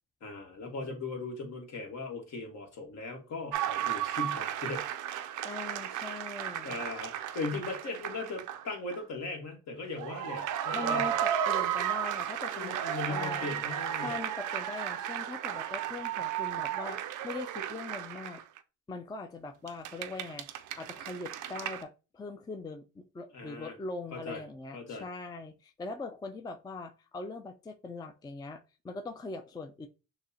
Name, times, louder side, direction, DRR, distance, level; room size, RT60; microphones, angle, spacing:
voice 1, 0.2-4.8 6.6-11.1 12.5-14.2 23.3-23.8 24.1-24.4 24.7-25.1, left 3 dB, 65° left, 2 dB, 1.3 m, -38 dB
sound 1, 3.5-8.7 8.9-9.0 9.9-18.6 19.7-21.8, right 10 dB, 80° right, 0.5 m, -34 dB
voice 2, 5.4-6.8 10.7-12.8 13.1-13.5 14.0-18.4 18.9-29.9, left 3 dB, 15° left, 7 dB, 0.4 m, -41 dB
6.3 x 2.1 x 2.7 m, 0.32 s
cardioid pair, 90°, 30 cm